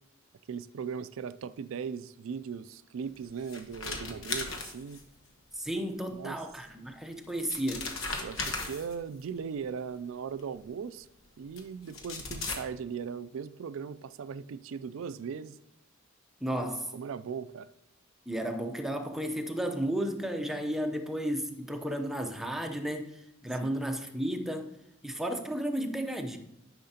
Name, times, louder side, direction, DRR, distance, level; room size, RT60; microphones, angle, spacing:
voice 1, 0.5-5.0 6.1-6.4 8.2-11.1 11.4-15.6 16.5-17.7 23.6-23.8, right 6 dB, 70° right, 0.3 m, -38 dB
sound 1, 3.1-5.3 6.6-6.7 7.2-9.2 10.4-10.5 11.6-11.7 11.9-12.5, left 3 dB, 85° left, 1.2 m, -36 dB
voice 2, 5.5-7.9 16.4-16.9 18.3-24.7 25.0-26.4, right 1 dB, ahead, 0.6 m, -33 dB
10.0 x 5.8 x 2.8 m
head